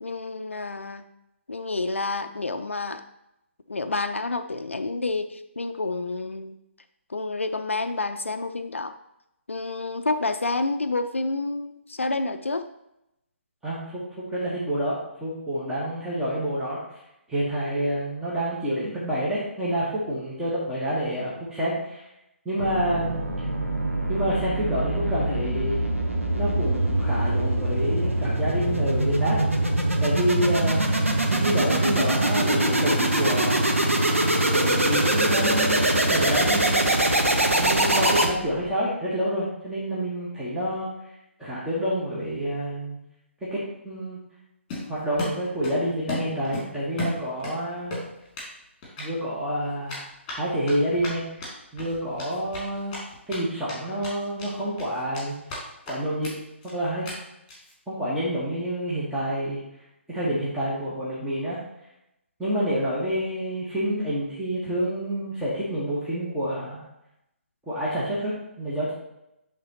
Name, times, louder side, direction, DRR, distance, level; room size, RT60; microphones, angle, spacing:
voice 1, 0.0-1.0 1.5-3.0 3.7-6.6 7.1-8.9 9.5-12.7, left 3 dB, 70° left, 9 dB, 0.4 m, -29 dB
voice 2, 13.6-14.0 14.3-16.8 17.3-22.0 22.4-23.5 24.1-25.8 26.3-29.4 30.0-30.8 31.2-33.7 34.5-37.0 37.6-40.9 41.4-43.0 43.5-43.6 43.8-44.2 44.9-47.9 49.0-50.1 50.3-51.4 51.7-52.9 53.3-55.3 55.9-56.3 56.6-57.0 57.9-59.6 60.1-61.6 62.4-66.8 67.7-68.9, equal, 5° right, -9 dB, 1.2 m, -28 dB
sound 1, 22.6-38.7, right 1 dB, 80° right, 0.9 m, -23 dB
Run, 44.7-45.8 46.1-47.6 47.9-48.5 48.8-49.1 49.9-53.4 53.7-53.8 54.0-54.5 54.8-55.6 55.9-56.0 56.2-56.3 56.6-56.7 57.1-57.2 57.5-57.7, left 2 dB, 20° left, 2.3 m, -34 dB
10.0 x 3.6 x 2.9 m, 0.86 s
figure-of-eight pair, 135°, 7 cm